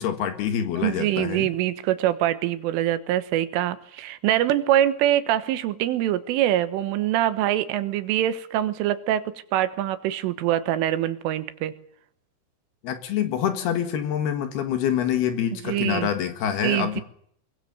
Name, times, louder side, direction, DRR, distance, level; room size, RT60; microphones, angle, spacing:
voice 1, 0.0-1.5 12.8-17.0, left 9 dB, 65° left, 9 dB, 3.2 m, -26 dB
voice 2, 0.8-11.7 15.7-16.1 16.6-17.0, right 12 dB, 90° right, 12 dB, 3.8 m, -24 dB
23.0 x 22.5 x 7.0 m, 0.67 s
omnidirectional pair, 5.7 m